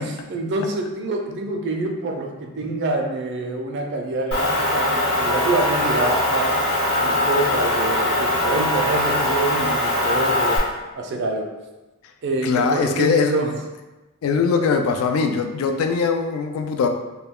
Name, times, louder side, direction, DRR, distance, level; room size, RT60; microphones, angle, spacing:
voice 1, 0.0-6.5 7.0-10.6 10.9-11.4 12.2-13.5, right 2 dB, 55° right, 3 dB, 0.4 m, -26 dB
Motor vehicle (road) / Engine, 4.3-10.6, left 1 dB, 50° left, 0.7 m, -21 dB
voice 2, 12.4-13.4 14.2-16.9, left 5 dB, 75° left, 5 dB, 0.3 m, -21 dB
2.2 x 2.2 x 3.5 m, 1.1 s
head